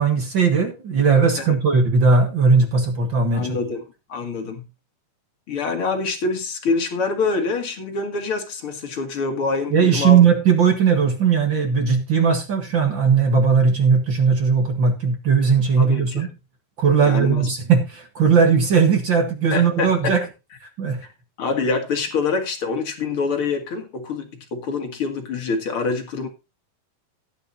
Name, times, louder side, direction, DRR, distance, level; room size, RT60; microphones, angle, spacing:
voice 1, 0.0-3.6 9.7-16.3 16.8-20.2 20.6-21.0, right 5 dB, 50° right, 1.5 m, -18 dB
voice 2, 3.3-4.6 5.5-10.2 15.8-16.3 17.0-17.5 19.5-20.1 21.4-26.3, left 4 dB, 40° left, 2.4 m, -25 dB
15.0 x 10.0 x 2.7 m
omnidirectional pair, 4.3 m